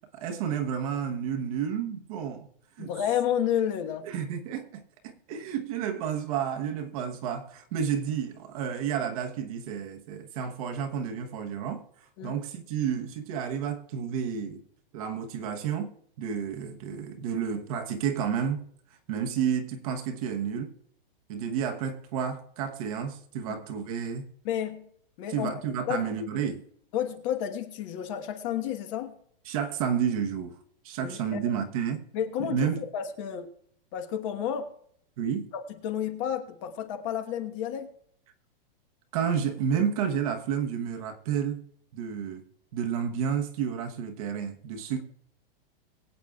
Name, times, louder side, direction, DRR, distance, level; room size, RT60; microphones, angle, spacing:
voice 1, 0.1-2.5 2.8-2.9 4.0-11.8 12.2-14.6 14.9-15.9 16.2-18.6 19.1-20.7 21.3-24.3 25.3-26.6 29.5-30.5 30.8-32.0 32.4-32.8 35.2-35.5 39.1-41.6 41.9-42.4 42.7-45.0, right 8 dB, 40° right, 1.1 m, -31 dB
voice 2, 2.8-4.1 12.2-12.3 23.5-23.6 24.4-24.9 25.2-25.6 25.9-26.1 26.9-29.1 31.0-31.5 32.1-32.7 32.9-33.5 33.9-34.7 35.5-37.9, left 9 dB, 35° left, 1.3 m, -31 dB
23.0 x 8.3 x 2.4 m
supercardioid pair, 170°, 29 cm